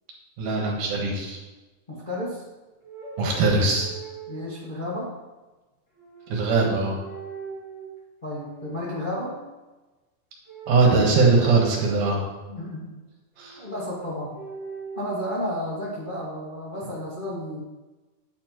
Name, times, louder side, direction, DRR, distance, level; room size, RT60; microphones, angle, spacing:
voice 1, 0.4-1.4 3.2-3.9 6.3-7.0 10.7-12.2 13.4-13.6, right 3 dB, 70° right, -1 dB, 2.7 m, -21 dB
voice 2, 1.9-2.4 4.3-5.1 8.2-9.3 12.5-12.9 13.6-14.3 14.9-17.6, left 1 dB, 30° left, -7 dB, 0.9 m, -32 dB
sound 1, 2.8-4.6 5.9-6.7 7.0-7.9 8.3-9.5 10.5-12.3 13.4-15.1, right 3 dB, 15° left, 1.3 m, -41 dB
9.4 x 6.9 x 3.0 m, 1.2 s
omnidirectional pair, 4.0 m